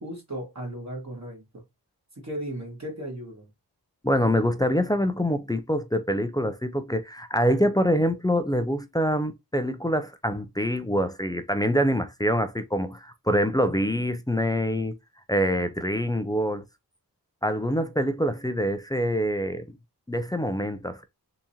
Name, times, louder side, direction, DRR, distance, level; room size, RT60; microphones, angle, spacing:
voice 1, 0.0-1.6 2.2-3.5, right 1 dB, 40° right, 1.7 m, -36 dB
voice 2, 4.0-14.9 15.3-16.6 17.4-19.6 20.1-21.0, equal, 10° left, 0.4 m, -25 dB
3.6 x 2.9 x 2.7 m
wide cardioid pair, 45°, 40 cm